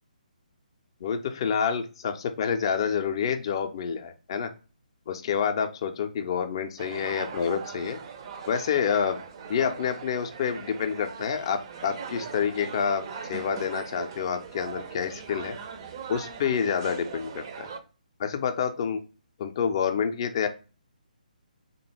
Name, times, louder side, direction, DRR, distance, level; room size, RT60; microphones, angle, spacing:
voice 1, 1.0-4.5 5.1-8.0 8.5-9.2 9.5-15.6 16.1-17.7 18.2-19.0 19.4-20.5, left 7 dB, 35° left, 7 dB, 0.4 m, -28 dB
sound 1, 6.8-17.8, right 6 dB, 30° right, 0.4 m, -40 dB
3.4 x 2.2 x 3.0 m, 0.34 s
figure-of-eight pair, 140°, 5 cm